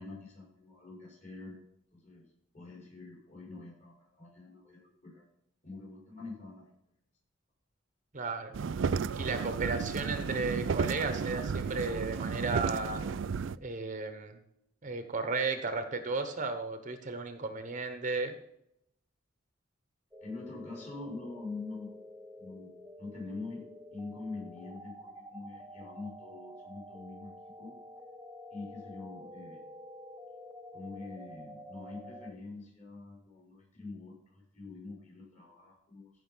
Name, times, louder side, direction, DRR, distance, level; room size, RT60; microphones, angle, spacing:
voice 1, 0.0-1.6 1.9-2.2 2.5-5.2 5.6-6.7 20.2-22.0 22.4-23.6 23.9-27.3 27.6-27.8 28.5-29.6 30.7-36.1, left 3 dB, 35° left, -3 dB, 5.3 m, -45 dB
voice 2, 8.1-8.5 9.2-13.0 13.6-14.4 14.8-18.3, right 3 dB, 40° right, 7 dB, 1.0 m, -34 dB
sound 1, 8.5-13.6, right 5 dB, 65° right, 0.4 m, -33 dB
sound 2, 20.1-32.3, left 1 dB, 10° right, 0.9 m, -49 dB
15.0 x 5.6 x 5.6 m, 0.76 s
head